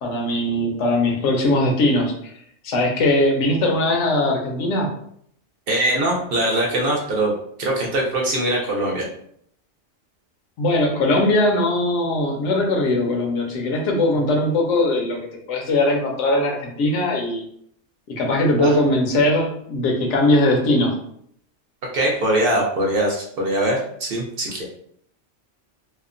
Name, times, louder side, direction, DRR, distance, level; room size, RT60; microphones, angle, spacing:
voice 1, 0.0-2.3 2.6-4.9 10.6-15.2 15.5-17.4 18.1-21.0, left 1 dB, 80° left, 1 dB, 1.0 m, -20 dB
voice 2, 5.7-7.3 7.6-9.1 18.6-18.8 21.9-24.7, right 1 dB, 60° right, -1 dB, 0.7 m, -22 dB
2.8 x 2.0 x 2.4 m, 0.68 s
omnidirectional pair, 1.2 m